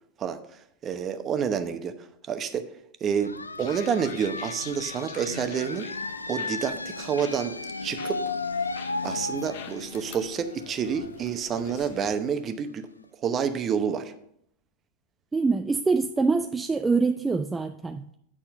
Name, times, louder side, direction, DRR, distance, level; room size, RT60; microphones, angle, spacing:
voice 1, 0.8-1.9 2.3-2.7 3.0-3.3 3.6-5.9 6.3-8.2 9.0-12.9 13.2-14.1, right 7 dB, 30° right, 8 dB, 0.9 m, -28 dB
sound 1, 3.2-12.6, left 3 dB, 85° left, 0.3 m, -35 dB
sound 2, 3.6-12.2, left 8 dB, 55° left, 0.8 m, -46 dB
voice 2, 15.3-18.1, right 4 dB, 15° right, 7 dB, 0.4 m, -24 dB
8.6 x 4.3 x 6.8 m, 0.73 s
figure-of-eight pair, 90°, 0 cm